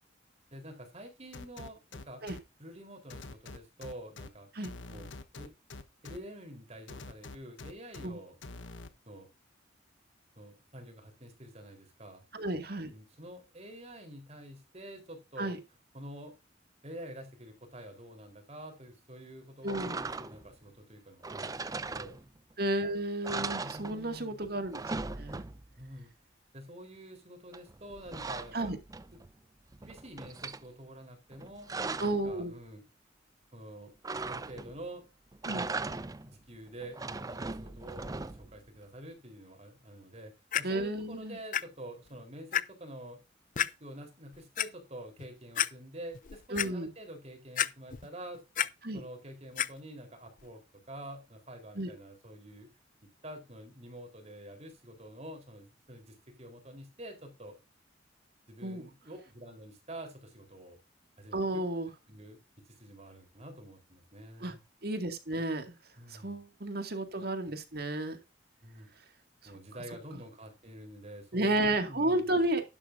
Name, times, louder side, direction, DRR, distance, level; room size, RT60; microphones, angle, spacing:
voice 1, 0.5-2.2 2.6-4.5 4.9-5.5 6.0-8.3 9.1-9.3 10.4-12.2 12.9-15.6 15.9-16.3 16.8-22.2 23.6-24.4 25.8-26.1 26.5-28.7 29.1-29.2 29.8-31.7 32.0-32.8 33.5-33.9 34.3-35.0 35.8-40.3 40.6-43.2 43.5-48.4 48.9-50.6 50.9-52.7 53.2-57.5 58.5-60.8 61.2-61.4 62.1-62.4 62.7-64.6 66.0-66.4 68.6-68.9 69.4-72.3, right 1 dB, 35° right, 4 dB, 3.9 m, -47 dB
sound 1, 1.3-2.4 3.1-4.3 4.6-6.2 6.9-8.1 8.4-8.9, left 3 dB, 80° left, 1.2 m, -45 dB
voice 2, 12.3-12.9 15.4-15.6 19.6-20.0 22.6-24.8 25.1-25.4 28.5-28.8 32.0-32.5 35.4-35.7 40.6-41.4 46.5-46.9 48.8-49.0 51.8-51.9 58.6-58.8 61.3-61.9 64.4-64.5 64.8-65.8 66.1-68.2 69.4-69.5 71.3-72.6, right 1 dB, 55° right, 7 dB, 2.1 m, -32 dB
sound 2, 19.7-20.5 21.2-22.5 22.9-23.0 23.2-24.3 24.6-25.8 27.5-29.3 29.7-30.6 31.3-32.3 34.0-34.8 35.3-36.3 36.8-38.6, right 3 dB, 20° right, 0.5 m, -39 dB
Clock, 40.5-40.6 41.5-41.6 42.1-42.2 42.5-42.6 43.6-43.7 44.3-44.7 45.2-45.3 45.6-45.7 46.1-46.7 47.6-48.1 48.3-48.7 49.6-49.7 50.4-50.5, left 10 dB, 45° left, 0.5 m, -29 dB
11.5 x 11.0 x 2.6 m, 0.27 s
head